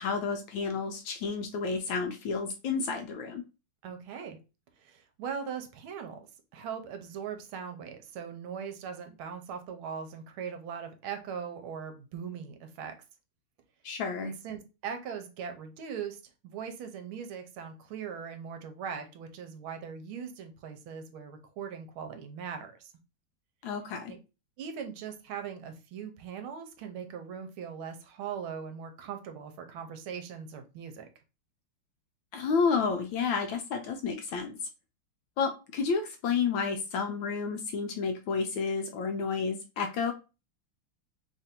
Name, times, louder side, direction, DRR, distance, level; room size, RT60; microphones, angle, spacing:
voice 1, 0.0-3.4 13.8-14.3 23.6-24.1 32.3-34.6 35.4-40.1, left 5 dB, 75° left, 5 dB, 1.2 m, -30 dB
voice 2, 3.8-4.4 4.8-6.3 6.5-12.9 14.2-22.9 24.1-24.2 24.6-31.1, right 7 dB, 80° right, 6 dB, 1.5 m, -40 dB
3.5 x 2.5 x 4.2 m, 0.30 s
omnidirectional pair, 2.4 m